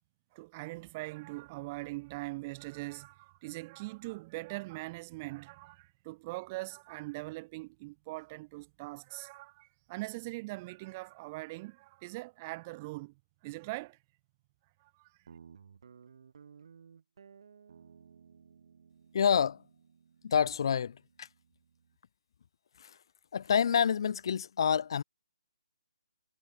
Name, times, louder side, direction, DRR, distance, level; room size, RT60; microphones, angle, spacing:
voice 1, 0.3-14.0 14.8-15.1, right 22 dB, 20° right, 0.7 m, -42 dB
Guitar, 15.3-22.0, right 6 dB, 55° right, 3.2 m, -57 dB
voice 2, 19.1-19.6 20.2-21.3 22.8-23.0 23.3-25.0, left 7 dB, 50° left, 0.7 m, -28 dB
hypercardioid pair, 160°, 3 cm